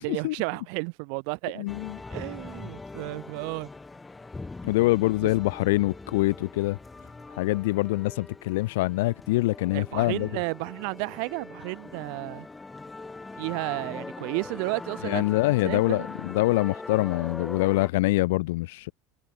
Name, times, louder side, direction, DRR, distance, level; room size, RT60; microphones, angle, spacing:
voice 1, 0.0-1.6 2.1-3.7 9.7-12.5 13.4-15.2 15.6-16.1, right 40 dB or more, 70° right, 0.9 m, -32 dB
voice 2, 1.6-2.0 4.6-6.8 7.3-10.3 15.0-18.9, left 20 dB, 75° left, 0.3 m, -25 dB
sound 1, 1.7-17.9, left 3 dB, 15° left, 5.9 m, -42 dB
hypercardioid pair, 95°, 0 cm